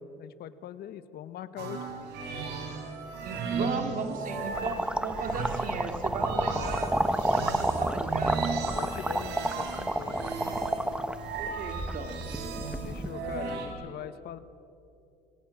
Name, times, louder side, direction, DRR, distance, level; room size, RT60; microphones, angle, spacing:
voice 1, 0.2-1.8 3.6-3.7 8.7-10.6 12.8-14.4, left 11 dB, 70° left, 13 dB, 1.3 m, -41 dB
sound 1, 1.6-13.7, right 4 dB, 80° right, 4.7 m, -36 dB
voice 2, 3.2-8.5 11.4-12.2, right 4 dB, 55° right, 5 dB, 2.8 m, -36 dB
sound 2, 4.5-13.1, right 1 dB, 5° right, 1.2 m, -30 dB
27.0 x 24.5 x 7.4 m, 2.6 s
cardioid pair, 110°, 17 cm